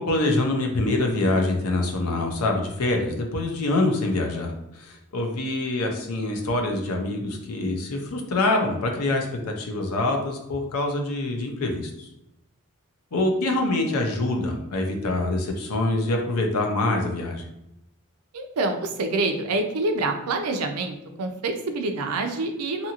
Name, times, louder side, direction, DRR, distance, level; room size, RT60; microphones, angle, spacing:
voice 1, 0.0-12.1 13.1-17.4, left 2 dB, 85° left, 2 dB, 0.6 m, -25 dB
voice 2, 18.3-22.9, right 2 dB, 80° right, 5 dB, 0.5 m, -26 dB
2.7 x 2.5 x 2.8 m, 0.85 s
head